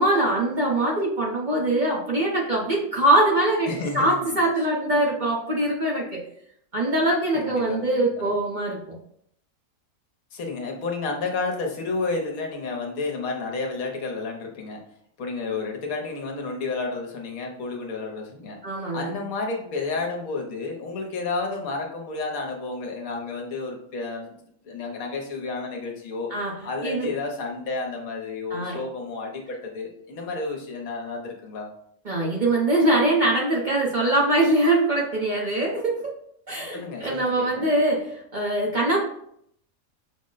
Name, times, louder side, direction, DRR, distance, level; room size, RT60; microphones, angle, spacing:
voice 1, 0.0-6.2 6.7-9.0 18.6-19.1 26.3-26.5 26.8-27.1 28.5-28.8 32.0-36.1 36.5-39.0, right 1 dB, 45° right, -4 dB, 0.7 m, -23 dB
voice 2, 3.7-4.4 7.3-8.3 10.3-14.8 15.2-18.6 18.9-24.4 24.6-26.3 26.6-31.7 36.7-37.7, left 3 dB, 75° left, 1 dB, 1.3 m, -31 dB
5.9 x 2.1 x 3.8 m, 0.69 s
omnidirectional pair, 1.5 m